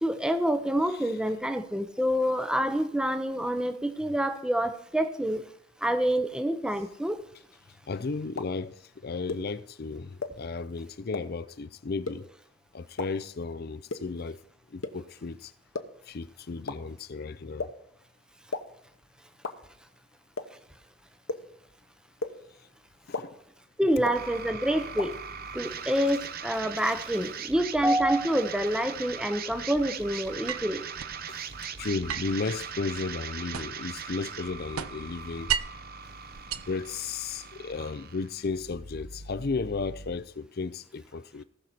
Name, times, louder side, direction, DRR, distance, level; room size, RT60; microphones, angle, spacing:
voice 1, 0.0-5.4 5.8-7.2 23.8-25.1 25.5-30.8, equal, 5° right, 0.8 m, -27 dB
voice 2, 7.9-12.3 12.7-14.4 14.7-15.5 16.1-17.7 23.1-23.4 31.3-35.5 36.5-41.4, left 4 dB, 50° left, 0.5 m, -34 dB
sound 1, 8.4-8.5 9.3-9.4 10.2-10.3 11.1-11.2 12.1-12.2 13.0-13.1 13.9-14.0 14.8-14.9 15.7-15.8 16.7-16.8 17.6-17.7 18.5-18.6 19.4-19.5 20.4-20.5 21.3-21.4 22.2-22.3 23.1-23.2 24.1-24.2 25.0-25.1, left 3 dB, 70° left, 1.1 m, -31 dB
sound 2, 24.1-40.2, right 6 dB, 45° right, 0.7 m, -40 dB
sound 3, 30.5-31.2 32.1-33.9 34.3-35.9 36.3-37.4, right 9 dB, 90° right, 0.6 m, -35 dB
18.5 x 6.6 x 4.3 m
head